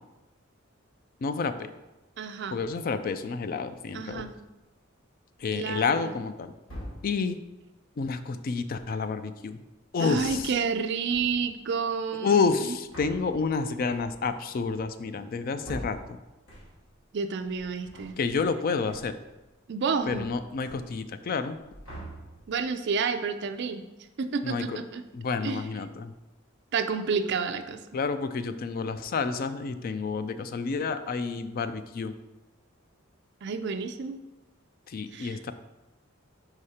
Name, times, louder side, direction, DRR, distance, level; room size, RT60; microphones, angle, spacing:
voice 1, 1.2-1.7 2.5-4.3 5.4-6.5 7.0-7.4 8.0-9.6 9.9-10.5 12.2-16.2 18.2-19.1 20.1-21.6 24.4-24.8 25.1-26.1 27.9-32.1 34.9-35.5, left 5 dB, 45° left, 11 dB, 0.3 m, -29 dB
voice 2, 2.2-2.6 3.9-4.3 5.5-6.1 10.0-12.8 17.1-18.2 19.7-20.3 22.5-23.8 24.2-25.0 25.4-25.7 26.7-27.8 33.4-34.2 35.1-35.4, right 5 dB, 55° right, 8 dB, 0.4 m, -30 dB
sound 1, 4.1-4.6 5.3-5.9 6.6-7.4 10.0-10.8 11.1-11.6 12.4-17.0 17.4-18.6 18.9-19.4 19.6-21.2 21.5-22.7, equal, 70° left, 2.1 m, -45 dB
4.9 x 4.7 x 4.2 m, 1.0 s
head